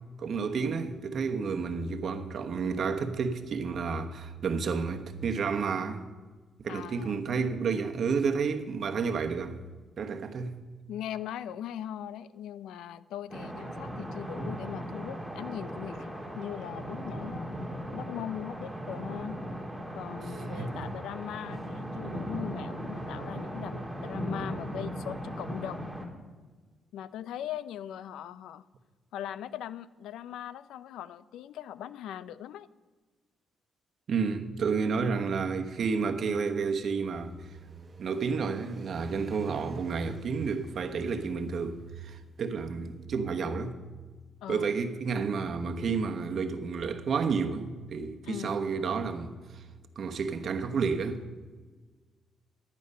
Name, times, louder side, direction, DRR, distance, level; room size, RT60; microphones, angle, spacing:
voice 1, 0.2-6.1 6.6-9.6 10.0-10.6 20.5-20.8 34.1-37.3 38.0-43.7 44.5-49.6 50.0-51.2, right 5 dB, 60° right, 1.1 m, -31 dB
voice 2, 6.7-7.2 10.9-17.5 17.9-19.4 19.9-25.9 26.9-28.6 29.1-32.7 44.4-44.7 48.2-48.6, left 10 dB, 85° left, 0.4 m, -40 dB
sound 1, 13.3-26.0, equal, ahead, 2.7 m, -38 dB
sound 2, 37.1-42.6, right 3 dB, 40° right, 0.9 m, -48 dB
11.0 x 9.7 x 5.5 m
cardioid pair, 70°, 0 cm